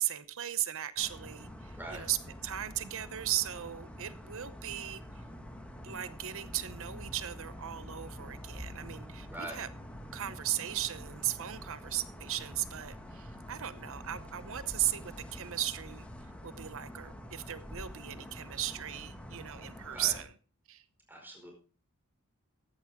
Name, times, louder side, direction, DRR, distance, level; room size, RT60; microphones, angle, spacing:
voice 1, 0.0-2.2 2.4-5.2 5.8-9.7 10.1-16.1 16.4-20.3 20.7-20.8, right 12 dB, 65° right, 14 dB, 0.8 m, -36 dB
sound 1, 1.0-20.2, equal, 5° left, 1.7 m, -46 dB
voice 2, 9.3-9.6 19.9-20.2 21.1-21.5, right 1 dB, 10° right, 1 dB, 5.0 m, -42 dB
14.5 x 11.0 x 3.6 m, 0.37 s
head